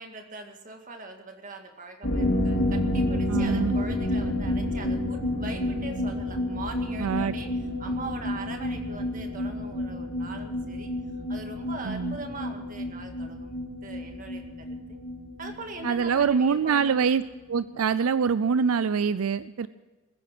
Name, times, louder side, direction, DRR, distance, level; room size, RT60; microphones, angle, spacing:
voice 1, 0.0-7.5 7.8-10.9 11.3-15.0 15.4-17.1, right 3 dB, 35° right, 4 dB, 1.9 m, -41 dB
sound 1, 2.0-17.4 17.7-17.8 18.1-18.2, left 1 dB, 65° left, 3.2 m, -30 dB
voice 2, 3.3-3.8 7.0-7.3 11.8-12.2 15.8-17.2 17.5-19.7, right 6 dB, 75° right, 15 dB, 0.4 m, -24 dB
21.5 x 10.0 x 6.1 m, 1.2 s
head